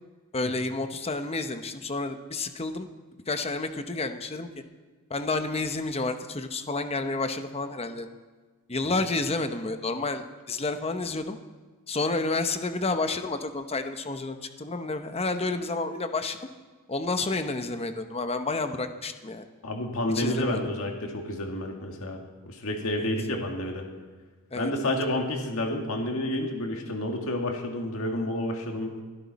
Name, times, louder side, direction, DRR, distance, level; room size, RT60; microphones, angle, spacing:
voice 1, 0.3-2.9 3.3-4.5 5.1-8.1 8.7-11.4 11.9-16.4 16.9-19.5 20.1-20.6 24.5-24.9, left 3 dB, 25° left, 8 dB, 0.9 m, -30 dB
voice 2, 19.6-22.2 22.5-23.9 24.6-29.0, left 1 dB, 65° left, 2 dB, 2.1 m, -29 dB
22.5 x 12.5 x 4.2 m, 1.4 s
head